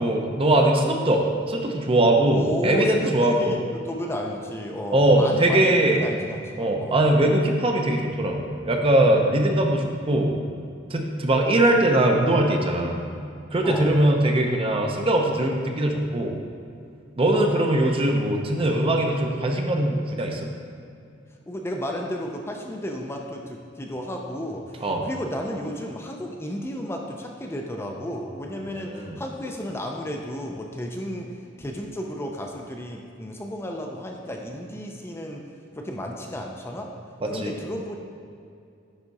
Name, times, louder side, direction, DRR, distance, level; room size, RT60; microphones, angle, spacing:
voice 1, 0.0-3.5 4.9-6.0 6.6-10.4 10.9-13.1 13.5-16.4 17.2-20.4 24.8-25.1 28.9-29.2 37.2-37.5, right 1 dB, 30° right, 2 dB, 0.6 m, -21 dB
voice 2, 2.3-7.0 13.6-13.9 21.5-31.3 31.6-35.4 35.8-36.9 37.3-38.0, equal, 15° left, 1 dB, 0.5 m, -33 dB
9.8 x 3.6 x 4.1 m, 2.4 s
head